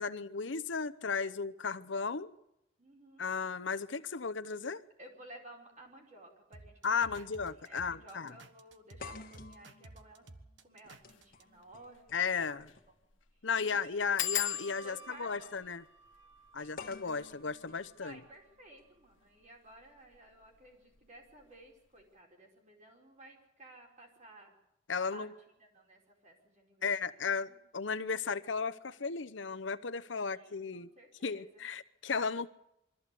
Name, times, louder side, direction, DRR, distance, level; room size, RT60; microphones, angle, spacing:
voice 1, 0.0-2.3 3.2-4.8 6.8-8.3 12.1-12.7 13.4-15.8 16.5-18.2 24.9-25.3 26.8-30.9 31.2-32.5, left 5 dB, 70° left, 0.8 m, -35 dB
voice 2, 2.8-3.3 5.0-10.2 10.6-12.2 12.9-13.0 13.6-14.1 14.6-15.6 16.6-16.9 18.0-24.5 25.0-25.3 25.6-27.6 30.2-31.7, right 1 dB, 40° right, 4.8 m, -55 dB
sound 1, 6.5-11.4, right 2 dB, 65° right, 1.4 m, -53 dB
sound 2, 7.0-7.2 7.5-7.6 9.0-13.0 14.2-14.4 16.8-18.8, left 4 dB, 50° left, 1.8 m, -52 dB
sound 3, 11.0-11.2 11.6-11.7 11.9-12.0 12.6-12.9 13.1-13.2 14.2-19.4 20.1-20.6 21.0-21.3 21.6-21.7, left 10 dB, 85° left, 1.4 m, -41 dB
23.0 x 14.5 x 8.4 m
head